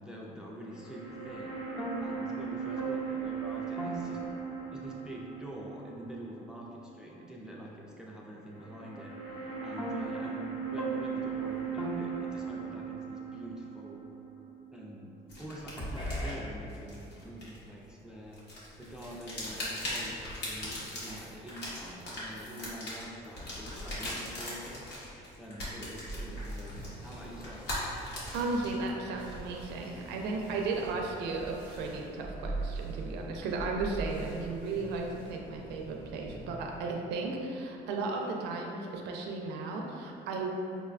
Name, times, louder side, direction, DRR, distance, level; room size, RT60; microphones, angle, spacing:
voice 1, 0.0-1.6 2.0-4.2 4.7-14.1 14.7-18.4 18.8-24.9 25.4-27.7 30.4-30.8, equal, 5° right, -3 dB, 0.3 m, -46 dB
sound 1, 0.7-7.0 7.3-7.4 8.4-15.4 15.8-16.3, right 4 dB, 30° left, 0.7 m, -37 dB
sound 2, 15.3-18.0 18.3-28.9, left 1 dB, 75° left, 1.1 m, -40 dB
sound 3, 26.1-36.8, right 2 dB, 50° left, 1.0 m, -43 dB
voice 2, 28.3-40.5, right 3 dB, 85° right, 1 dB, 0.4 m, -35 dB
5.1 x 2.1 x 2.4 m, 2.9 s
cardioid pair, 110°, 17 cm